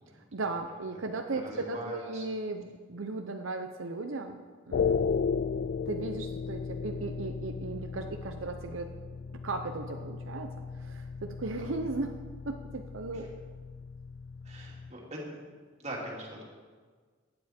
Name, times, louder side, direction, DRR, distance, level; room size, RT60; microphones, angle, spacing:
voice 1, 0.3-4.4 4.7-5.0 5.9-9.0 9.4-12.1 12.5-13.3, right 3 dB, 80° right, 5 dB, 0.8 m, -36 dB
voice 2, 1.3-2.2 11.6-11.7 13.1-13.2 14.4-15.2 15.8-16.4, right 1 dB, 35° right, -3 dB, 2.8 m, -42 dB
sound 1, 4.7-14.9, left 5 dB, 55° left, 0.3 m, -35 dB
16.5 x 9.8 x 4.4 m, 1.5 s
head